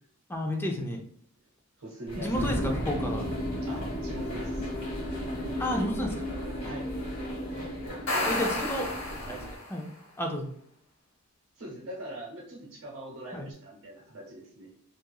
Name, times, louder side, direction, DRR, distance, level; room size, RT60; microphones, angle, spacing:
voice 1, 0.3-1.0 2.2-3.3 5.6-6.3 6.6-6.7 8.2-8.9 9.2-9.4 9.7-9.9 10.2-10.5 13.3-13.5, equal, 10° left, 2 dB, 0.4 m, -31 dB
voice 2, 1.8-2.6 3.6-4.7 6.7-6.9 8.1-8.7 11.6-14.7, right 1 dB, 80° right, -3 dB, 0.9 m, -41 dB
sound 1, 2.1-9.6, equal, 45° left, 1.0 m, -40 dB
sound 2, 2.3-9.3, equal, 90° left, 1.1 m, -35 dB
sound 3, 7.9-9.8, left 2 dB, 65° left, 0.7 m, -32 dB
2.8 x 2.4 x 2.2 m, 0.63 s
head